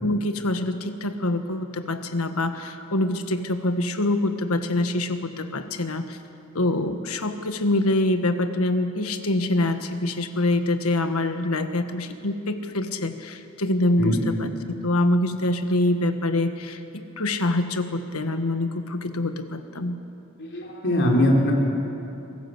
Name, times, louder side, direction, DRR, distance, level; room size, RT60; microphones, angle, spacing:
voice 1, 0.0-6.2 6.5-14.5 14.8-19.9, left 1 dB, 75° left, 8 dB, 1.5 m, -25 dB
voice 2, 20.4-21.5, left 1 dB, 55° left, -1 dB, 4.3 m, -21 dB
26.0 x 18.0 x 7.9 m, 2.8 s
head